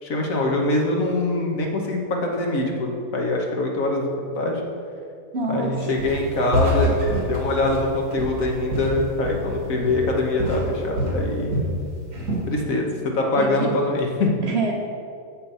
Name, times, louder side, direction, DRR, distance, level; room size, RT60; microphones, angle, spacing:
voice 1, 0.0-4.6 5.5-6.9 7.2-11.7 12.4-14.3, left 2 dB, 65° left, 1 dB, 1.5 m, -23 dB
voice 2, 5.3-5.9 13.4-13.8 14.4-14.7, right 3 dB, 50° right, 1 dB, 1.0 m, -26 dB
Walk footsteps, 6.0-6.3 6.5-9.6 9.8-10.1 10.4-11.8 12.1-12.5, equal, 75° right, 2.1 m, -26 dB
7.4 x 6.7 x 5.4 m, 2.3 s
omnidirectional pair, 1.6 m